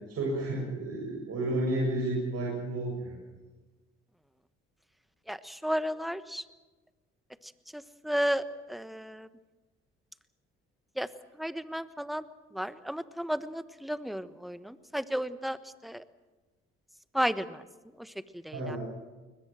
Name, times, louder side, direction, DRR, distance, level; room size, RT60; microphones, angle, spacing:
voice 1, 0.1-3.1 18.5-18.8, right 1 dB, 55° right, -2 dB, 7.3 m, -31 dB
voice 2, 5.3-6.4 7.7-9.3 11.0-11.1 11.4-12.2 12.5-15.6 15.8-16.0 17.1-17.6 18.0-18.1 18.4-18.8, equal, ahead, 13 dB, 1.2 m, -33 dB
22.0 x 21.0 x 7.6 m, 1.2 s
hypercardioid pair, 55°, 31 cm